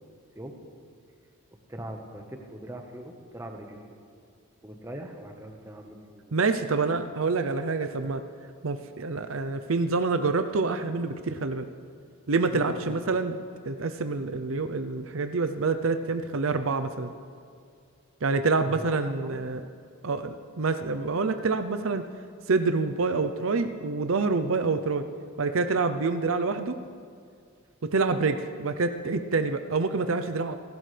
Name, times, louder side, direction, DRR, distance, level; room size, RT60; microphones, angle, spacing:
voice 1, 1.7-4.0 4.6-6.2 12.5-13.1 18.6-18.8 19.2-19.4, right 1 dB, 15° right, 2 dB, 1.3 m, -41 dB
voice 2, 6.3-8.2 8.6-11.7 12.3-13.4 13.7-17.1 18.2-19.6 20.0-22.0 22.5-25.1 25.4-26.8 27.8-30.6, right 4 dB, 70° right, 8 dB, 0.6 m, -27 dB
29.0 x 12.0 x 3.4 m, 2.3 s
head